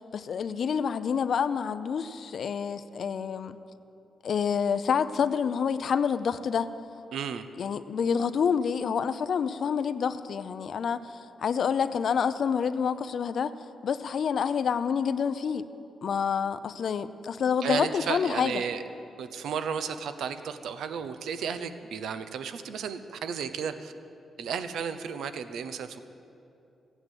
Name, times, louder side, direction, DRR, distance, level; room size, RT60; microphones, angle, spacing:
voice 1, 0.0-3.6 4.2-6.7 7.6-13.5 13.8-15.7 16.0-18.6, left 7 dB, 65° left, 12 dB, 0.6 m, -28 dB
voice 2, 7.1-7.4 17.6-18.8 19.2-23.9 24.4-26.0, right 6 dB, 85° right, 10 dB, 0.8 m, -33 dB
15.0 x 9.2 x 8.0 m, 2.7 s
cardioid pair, 85°, 0 cm